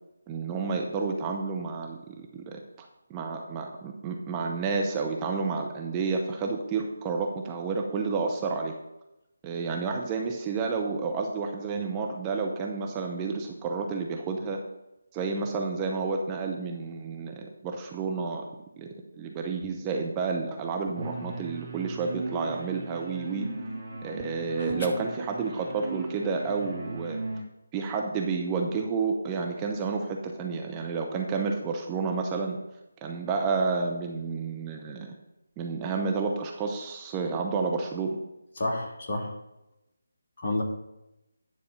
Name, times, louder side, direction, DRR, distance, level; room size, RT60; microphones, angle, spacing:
voice 1, 0.3-8.7 9.4-14.6 15.1-18.4 18.8-18.9 19.2-23.5 24.0-27.2 27.7-32.6 33.0-35.1 35.6-38.2, right 4 dB, 15° right, 1 dB, 0.7 m, -30 dB
sound 1, 21.0-27.4, right 3 dB, 40° right, 2.2 m, -37 dB
voice 2, 38.6-39.3 40.4-40.6, left 2 dB, 45° left, 1 dB, 1.6 m, -30 dB
9.7 x 4.2 x 6.2 m, 0.91 s
figure-of-eight pair, 150°, 0 cm